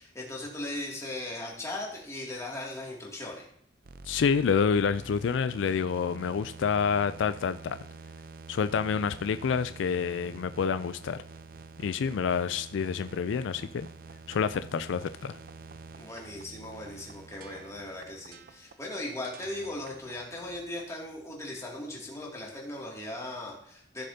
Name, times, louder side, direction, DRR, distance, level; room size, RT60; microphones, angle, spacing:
voice 1, 0.0-3.4 16.0-24.0, left 1 dB, 15° left, -3 dB, 2.4 m, -38 dB
sound 1, 3.8-21.0, right 4 dB, 55° right, 0.6 m, -48 dB
voice 2, 4.1-7.8 8.5-11.2 11.8-13.9 14.3-15.3, left 6 dB, 85° left, 12 dB, 0.4 m, -28 dB
15.0 x 6.7 x 2.8 m, 0.66 s
head